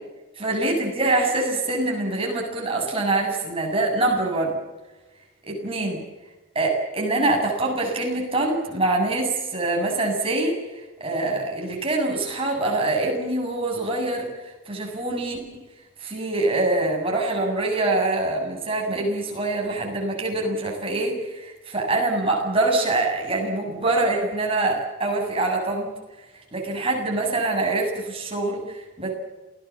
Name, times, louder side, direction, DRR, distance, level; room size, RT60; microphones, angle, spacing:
voice 1, 0.4-4.6 5.5-6.0 6.5-10.6 11.0-15.6 16.0-25.9 26.3-29.1, right 2 dB, 25° right, 0 dB, 7.6 m, -24 dB
28.0 x 18.5 x 7.3 m, 1.1 s
head